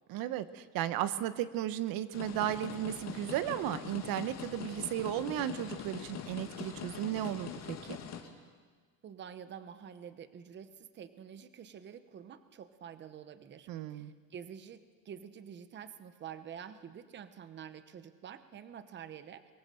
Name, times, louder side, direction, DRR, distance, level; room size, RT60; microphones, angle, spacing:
voice 1, 0.1-8.0 13.7-14.1, right 12 dB, 80° right, 13 dB, 1.1 m, -35 dB
sound 1, 2.1-8.2, left 8 dB, 50° left, 2.1 m, -43 dB
sound 2, 3.1-8.3, left 6 dB, 75° left, 2.8 m, -61 dB
voice 2, 9.0-19.5, right 8 dB, 30° right, 12 dB, 1.0 m, -48 dB
23.5 x 20.0 x 7.7 m, 1.5 s
cardioid pair, 175°, 34 cm